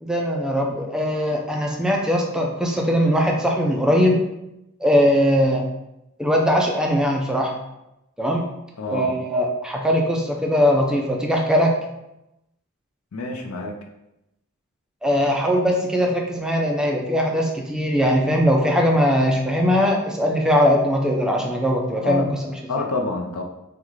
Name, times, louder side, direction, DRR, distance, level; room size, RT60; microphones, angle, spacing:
voice 1, 0.0-4.2 4.8-5.6 6.2-7.5 8.2-8.4 8.9-11.8 15.0-22.5, equal, 5° right, 0 dB, 0.3 m, -20 dB
voice 2, 8.8-9.1 13.1-13.7 22.0-22.3 22.7-23.4, left 3 dB, 85° left, 3 dB, 0.5 m, -27 dB
3.6 x 2.2 x 3.1 m, 0.90 s
head